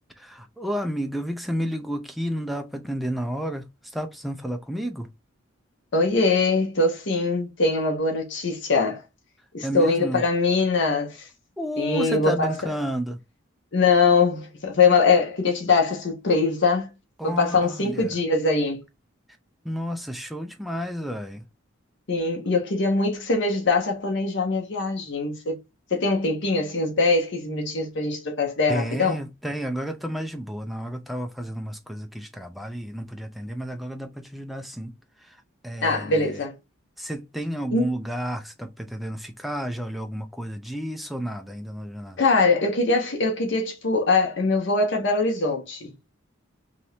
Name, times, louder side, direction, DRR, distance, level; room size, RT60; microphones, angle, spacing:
voice 1, 0.2-5.1 9.6-10.2 11.6-13.2 17.2-18.1 19.6-21.4 28.7-34.9 35.2-35.4 35.6-36.4 37.0-42.2, equal, ahead, 0.4 m, -31 dB
voice 2, 5.9-9.0 9.5-11.3 11.8-12.7 13.7-16.9 17.2-18.8 22.1-25.6 25.9-29.2 35.8-36.5 37.7-37.9 42.2-45.9, left 3 dB, 60° left, 0.8 m, -22 dB
2.8 x 2.6 x 3.2 m
head